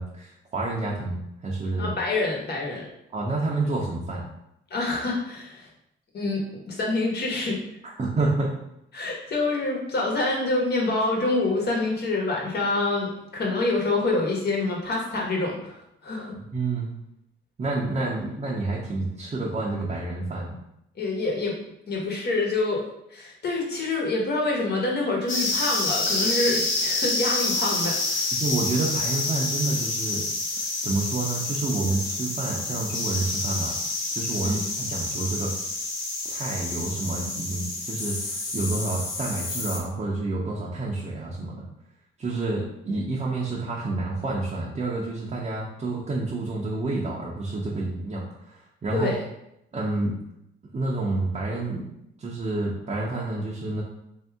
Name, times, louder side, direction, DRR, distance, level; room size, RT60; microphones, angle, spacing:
voice 1, 0.0-1.9 3.1-4.3 7.8-8.5 16.5-16.9 17.6-20.6 28.3-30.3 30.6-33.8 34.1-35.5 36.2-41.7 42.2-49.1 49.7-50.2 50.7-51.9 52.2-53.8, right 2 dB, 35° right, -4 dB, 0.7 m, -29 dB
voice 2, 1.8-2.8 4.7-5.7 6.1-6.4 6.7-7.6 8.9-13.1 13.3-16.3 21.0-21.5 21.9-22.8 23.1-28.3 34.4-34.6 48.9-49.2, left 2 dB, 55° left, -2 dB, 1.3 m, -26 dB
sound 1, 25.3-39.8, left 2 dB, 80° left, 1.1 m, -28 dB
3.4 x 2.7 x 3.5 m, 0.81 s
cardioid pair, 90°, 20 cm